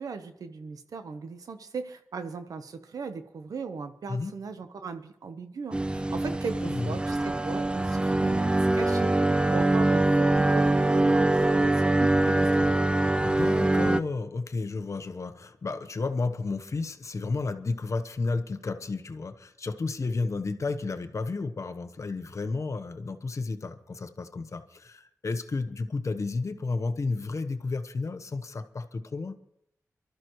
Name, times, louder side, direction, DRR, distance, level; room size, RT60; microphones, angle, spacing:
voice 1, 0.0-9.1 9.5-12.8, right 5 dB, 85° right, 9 dB, 1.0 m, -38 dB
sound 1, 5.7-14.0, right 2 dB, 15° right, 0.5 m, -23 dB
voice 2, 6.6-6.9 13.2-29.4, left 3 dB, 55° left, 9 dB, 1.0 m, -32 dB
24.0 x 13.0 x 3.1 m, 0.73 s
cardioid pair, 55°, 6 cm